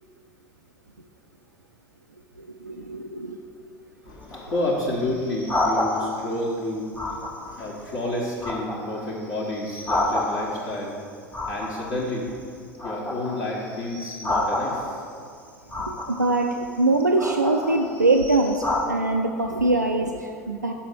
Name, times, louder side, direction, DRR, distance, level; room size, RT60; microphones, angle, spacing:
voice 1, 2.4-3.4 15.7-20.7, right 2 dB, 90° right, 3 dB, 0.4 m, -23 dB
voice 2, 4.0-6.9 7.5-11.0 11.5-12.3 12.8-15.0, left 1 dB, 45° left, -6 dB, 1.3 m, -30 dB
sound 1, 4.2-6.4 6.9-7.7 8.1-10.8 11.3-12.4 12.7-15.1 15.7-16.4 17.0-18.9, left 2 dB, 15° left, 1.3 m, -29 dB
6.1 x 5.7 x 6.3 m, 2.4 s
figure-of-eight pair, 75°, 9 cm